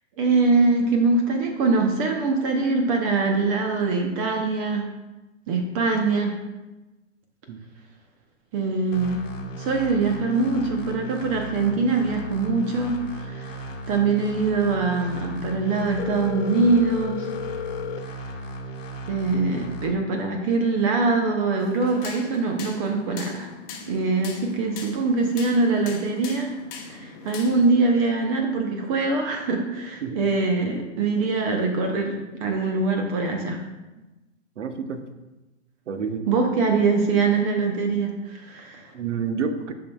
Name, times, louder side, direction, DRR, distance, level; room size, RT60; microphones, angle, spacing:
voice 1, 0.2-4.9 5.5-6.3 8.5-9.2 9.6-17.3 19.1-23.5 23.9-26.5 26.9-32.1 32.4-33.6 36.3-38.9, right 3 dB, 25° right, 3 dB, 0.7 m, -23 dB
sound 1, 8.9-19.9, right 1 dB, 85° left, 1.2 m, -36 dB
Telephone, 16.0-18.0, left 10 dB, 60° left, 0.6 m, -32 dB
sound 2, 21.6-27.7, left 5 dB, 25° left, 0.9 m, -40 dB
voice 2, 34.6-35.0 35.9-36.3 38.9-39.7, right 5 dB, 70° right, 8 dB, 0.9 m, -29 dB
10.0 x 5.5 x 2.3 m, 1.1 s
hypercardioid pair, 130°, 37 cm